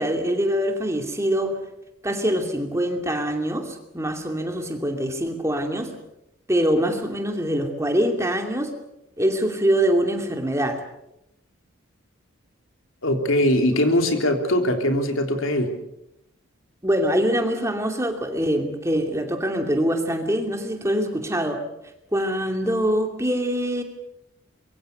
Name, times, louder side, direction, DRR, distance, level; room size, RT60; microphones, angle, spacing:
voice 1, 0.0-1.6 2.0-6.0 6.5-8.7 9.2-10.8 16.8-21.6 22.1-23.8, equal, 15° right, 5 dB, 2.6 m, -24 dB
voice 2, 13.0-15.7, left 1 dB, 80° left, 5 dB, 3.5 m, -21 dB
25.0 x 22.5 x 6.8 m, 0.84 s
head